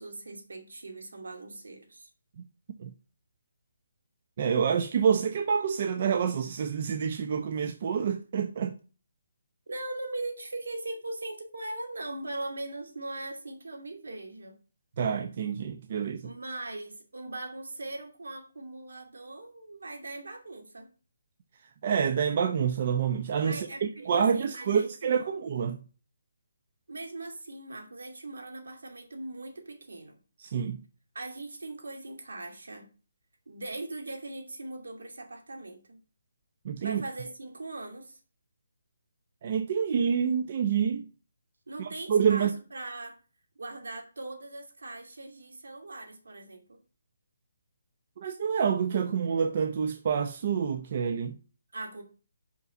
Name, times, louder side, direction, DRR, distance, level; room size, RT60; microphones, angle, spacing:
voice 1, 0.0-2.1 9.7-14.5 16.2-20.9 23.4-25.3 26.9-30.2 31.1-32.9 33.5-36.0 36.8-38.2 41.7-43.2 43.6-46.8 51.7-52.0, right 2 dB, 85° right, 2.5 m, -40 dB
voice 2, 4.4-8.8 15.0-16.3 21.8-25.8 30.4-30.8 36.6-37.0 39.4-41.1 41.8-42.5 48.2-51.4, right 7 dB, 40° right, 0.7 m, -27 dB
5.6 x 5.3 x 5.3 m
hypercardioid pair, 160°, 0 cm